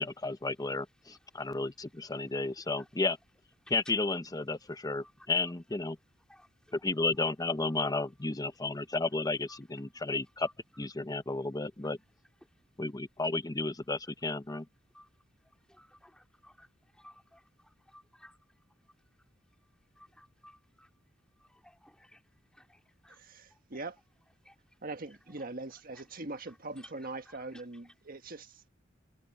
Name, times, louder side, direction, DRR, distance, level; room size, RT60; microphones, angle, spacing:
voice 1, 0.0-3.2 3.7-6.0 6.7-10.5 10.8-12.0 12.8-14.7, left 3 dB, 20° left, 0.7 m, -33 dB
voice 2, 1.0-1.4 2.8-2.9 3.6-3.9 5.0-5.3 6.3-6.7 7.0-7.1 7.6-8.1 9.5-9.6 10.4-10.5 11.8-11.9 12.4-12.6 14.5-14.6 14.9-18.9 19.2-19.3 19.9-20.9 21.4-23.2 23.5-23.8 24.4-24.8 25.1-26.0 26.5-27.9, left 1 dB, 5° left, 2.9 m, -59 dB
voice 3, 23.1-24.0 24.8-28.7, right 2 dB, 50° right, 1.6 m, -42 dB
head